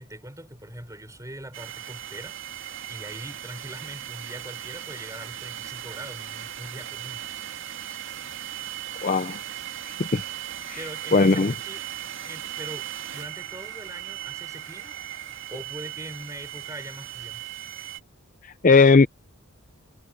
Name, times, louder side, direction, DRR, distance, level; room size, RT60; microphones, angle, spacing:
voice 1, 0.0-7.3 10.8-11.8 12.2-17.4, right 1 dB, 15° right, 5.6 m, -42 dB
sound 1, 1.5-18.0, right 12 dB, 60° right, 2.2 m, -37 dB
voice 2, 9.0-9.4 10.1-10.2 10.7-10.8 11.1-11.5 18.4-19.1, left 4 dB, 40° left, 0.5 m, -17 dB
head